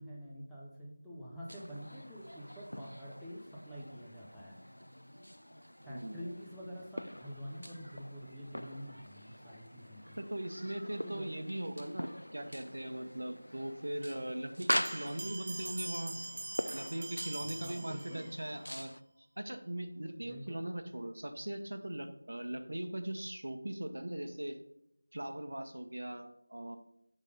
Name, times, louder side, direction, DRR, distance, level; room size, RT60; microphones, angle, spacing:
voice 1, 0.0-4.6 5.8-10.2 11.0-11.4 17.4-18.3 20.2-20.6, equal, ahead, -9 dB, 0.7 m, -47 dB
sound 1, 1.5-19.0, equal, 85° left, 0.3 m, -43 dB
voice 2, 5.8-6.2 10.2-16.1 16.7-18.9 19.4-24.6 25.1-26.8, right 1 dB, 65° right, 7 dB, 0.9 m, -40 dB
sound 2, 14.7-18.5, right 2 dB, 35° right, 0.5 m, -44 dB
6.4 x 5.4 x 5.2 m, 0.78 s
figure-of-eight pair, 170°, 0 cm